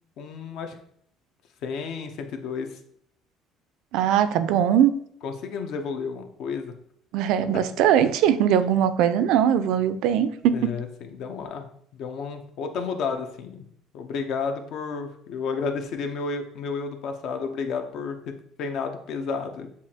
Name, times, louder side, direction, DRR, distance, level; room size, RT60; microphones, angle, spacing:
voice 1, 0.2-0.8 1.6-2.8 5.2-6.7 7.4-7.6 10.5-11.7 11.9-13.6 13.9-18.2 18.6-19.7, left 5 dB, 60° left, 6 dB, 0.6 m, -31 dB
voice 2, 3.9-4.9 7.1-10.7, right 9 dB, 70° right, 11 dB, 0.3 m, -21 dB
6.9 x 2.5 x 2.8 m, 0.67 s
cardioid pair, 130°, 0 cm